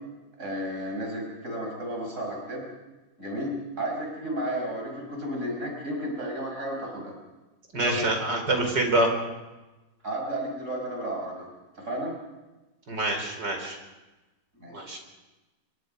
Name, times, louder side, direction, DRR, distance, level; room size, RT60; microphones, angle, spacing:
voice 1, 0.4-2.7 3.2-7.1 7.7-8.1 10.0-11.5 11.8-12.1 14.6-14.9, right 1 dB, 40° right, 1 dB, 6.0 m, -33 dB
voice 2, 7.7-9.1 12.9-13.8 14.7-15.0, right 2 dB, 75° right, 3 dB, 5.2 m, -26 dB
28.5 x 24.0 x 5.4 m, 1.1 s
omnidirectional pair, 1.9 m